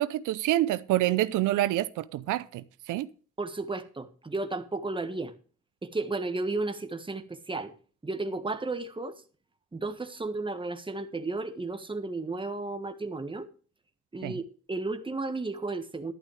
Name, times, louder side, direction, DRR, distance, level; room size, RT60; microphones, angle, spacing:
voice 1, 0.0-3.1 14.2-14.4, right 14 dB, 85° right, 0.6 m, -27 dB
voice 2, 3.4-5.3 5.8-7.7 8.0-9.2 9.7-13.5 14.1-14.4 14.7-16.1, right 3 dB, 15° right, 1.5 m, -33 dB
12.0 x 11.0 x 3.4 m
cardioid pair, 90°, 30 cm